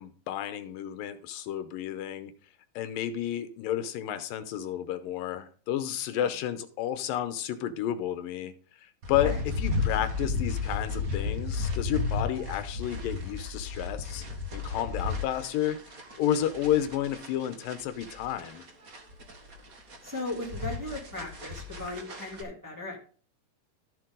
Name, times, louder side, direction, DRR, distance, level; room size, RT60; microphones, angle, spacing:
voice 1, 0.0-2.3 2.8-8.5 8.8-14.2 14.5-18.7, left 11 dB, 85° left, 11 dB, 2.4 m, -31 dB
sound 1, 9.0-22.4, left 4 dB, 40° right, 1.2 m, -34 dB
voice 2, 20.0-23.0, left 2 dB, 5° right, -3 dB, 2.4 m, -37 dB
13.0 x 7.6 x 3.8 m, 0.42 s
omnidirectional pair, 4.0 m